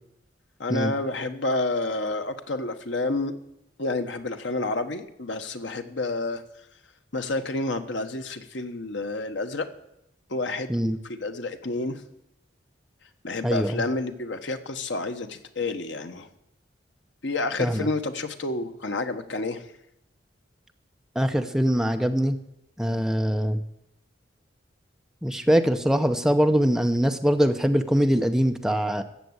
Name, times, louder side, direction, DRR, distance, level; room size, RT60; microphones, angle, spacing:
voice 1, 0.6-3.3 3.8-6.4 7.1-9.7 10.3-12.0 13.2-16.3 17.2-19.7, left 2 dB, 75° left, 8 dB, 1.2 m, -29 dB
voice 2, 13.4-13.8 17.6-17.9 21.2-22.4 22.8-23.6 25.2-29.0, equal, 5° right, 6 dB, 0.7 m, -23 dB
14.5 x 7.5 x 9.7 m, 0.82 s
head